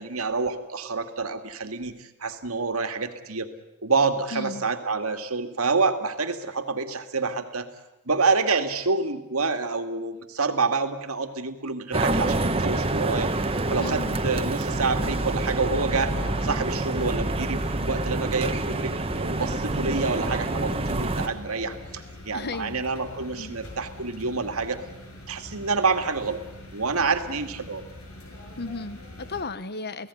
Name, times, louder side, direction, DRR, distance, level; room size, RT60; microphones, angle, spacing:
voice 1, 0.0-3.5 3.8-7.7 8.1-13.3 13.7-16.1 16.4-24.8 25.3-26.4 26.7-27.8, right 4 dB, 80° right, 7 dB, 2.3 m, -27 dB
voice 2, 4.3-4.7 13.8-14.2 22.3-22.9 23.4-23.6 28.6-30.1, left 3 dB, 50° left, 14 dB, 1.2 m, -35 dB
sound 1, 11.9-21.3, right 2 dB, 25° right, 1.3 m, -27 dB
sound 2, 16.1-29.4, left 1 dB, 75° left, 6.6 m, -43 dB
30.0 x 17.0 x 9.8 m, 0.91 s
head